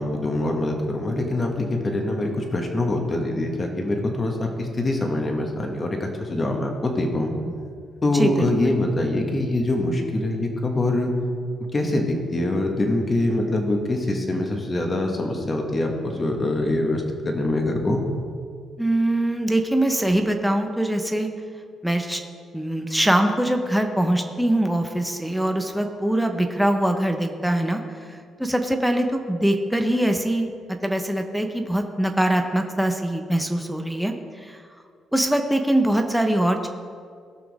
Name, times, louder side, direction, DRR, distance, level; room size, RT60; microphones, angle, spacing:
voice 1, 0.0-7.3 8.0-11.1 11.7-18.0, left 1 dB, 30° left, 2 dB, 1.7 m, -24 dB
voice 2, 8.1-8.7 18.8-21.3 21.8-22.2 22.5-27.8 28.1-30.5 30.8-34.6 35.1-36.7, right 1 dB, ahead, 4 dB, 1.0 m, -23 dB
17.5 x 6.0 x 3.6 m, 2.1 s
cardioid pair, 90°, 0 cm